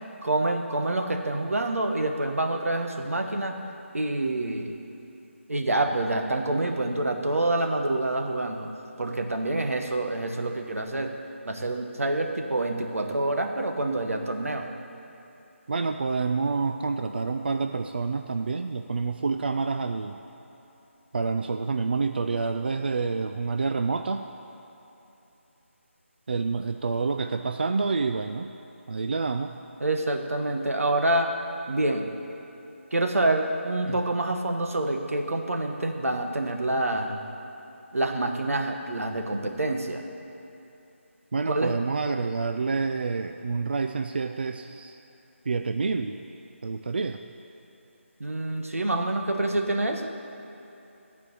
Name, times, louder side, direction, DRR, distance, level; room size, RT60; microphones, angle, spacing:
voice 1, 0.2-3.6 3.9-4.8 5.5-8.7 9.0-11.1 11.4-14.7 29.8-31.3 31.7-32.1 32.9-37.2 37.9-40.1 41.5-41.8 48.2-50.2, right 2 dB, 90° right, 4 dB, 1.3 m, -27 dB
voice 2, 15.7-20.2 21.1-24.3 26.3-28.5 28.9-29.5 33.9-34.0 41.3-45.0 45.5-46.2 46.6-47.2, right 4 dB, 45° right, 7 dB, 0.4 m, -28 dB
12.0 x 5.1 x 8.4 m, 3.0 s
figure-of-eight pair, 170°, 7 cm